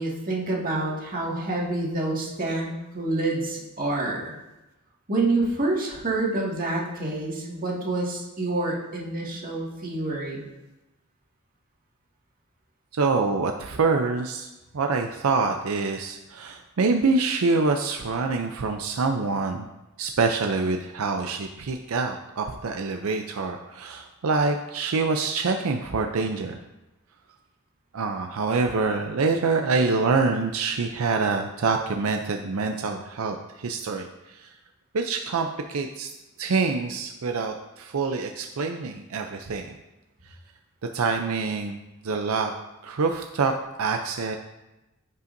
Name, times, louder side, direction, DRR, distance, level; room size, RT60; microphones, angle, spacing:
voice 1, 0.0-4.3 5.1-10.4, right 2 dB, 40° right, -4 dB, 2.0 m, -27 dB
voice 2, 12.9-19.7 20.0-26.6 27.9-34.5 34.9-36.1 36.4-39.8 40.2-40.3 40.9-41.8 42.0-42.5 42.8-44.4, right 4 dB, 80° right, 5 dB, 0.5 m, -26 dB
15.0 x 5.5 x 2.6 m, 1.0 s
head